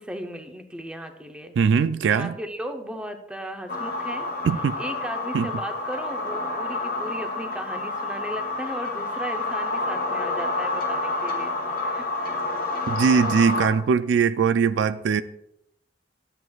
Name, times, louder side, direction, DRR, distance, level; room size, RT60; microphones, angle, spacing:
voice 1, 0.0-1.6 2.1-4.3 4.8-12.1, equal, 5° right, 0.7 m, -36 dB
voice 2, 1.6-2.3 4.4-4.8 5.3-5.5 12.9-15.2, right 6 dB, 75° right, 0.3 m, -21 dB
sound 1, 3.7-13.7, left 2 dB, 50° left, 1.3 m, -29 dB
12.0 x 7.9 x 2.3 m
head